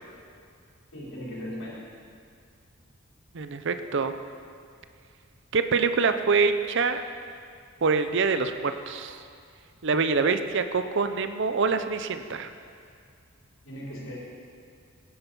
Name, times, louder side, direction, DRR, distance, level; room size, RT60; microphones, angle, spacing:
voice 1, 0.9-1.8 13.6-14.2, equal, 70° left, -6 dB, 4.1 m, -37 dB
voice 2, 3.3-4.1 5.5-7.0 7.8-9.2 9.8-12.5, right 4 dB, 60° right, 9 dB, 0.6 m, -25 dB
18.0 x 10.5 x 5.5 m, 2.3 s
head